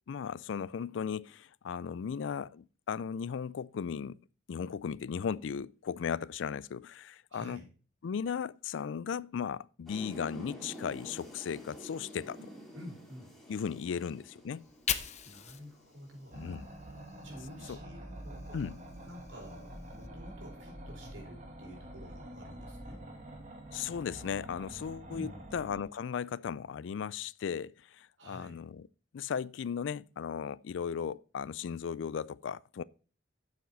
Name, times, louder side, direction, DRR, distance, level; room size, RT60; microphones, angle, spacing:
voice 1, 0.1-4.2 4.5-7.6 8.0-12.4 13.5-14.6 16.3-16.7 17.7-17.8 18.5-18.8 23.7-28.9 29.1-32.8, left 7 dB, 75° left, 0.4 m, -36 dB
voice 2, 7.3-7.6 12.7-13.3 13.9-14.0 15.2-16.5 17.2-23.0 25.1-25.4 28.2-28.6, equal, 85° right, 4.4 m, -49 dB
sound 1, 9.9-16.8, equal, ahead, 2.9 m, -50 dB
Fire, 14.5-17.7 18.0-20.1, left 8 dB, 40° left, 0.7 m, -42 dB
sound 2, 16.3-25.8, right 1 dB, 40° right, 2.0 m, -47 dB
9.3 x 7.1 x 4.0 m
head